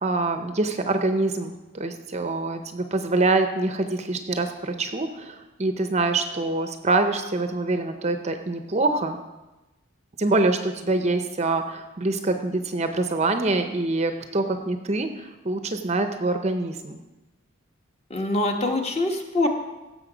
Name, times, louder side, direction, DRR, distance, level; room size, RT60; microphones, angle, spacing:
voice 1, 0.0-9.2 10.2-17.0, right 2 dB, 30° right, 7 dB, 0.6 m, -25 dB
voice 2, 18.1-19.5, left 2 dB, 30° left, 3 dB, 1.2 m, -24 dB
16.0 x 7.1 x 5.0 m, 1.1 s
head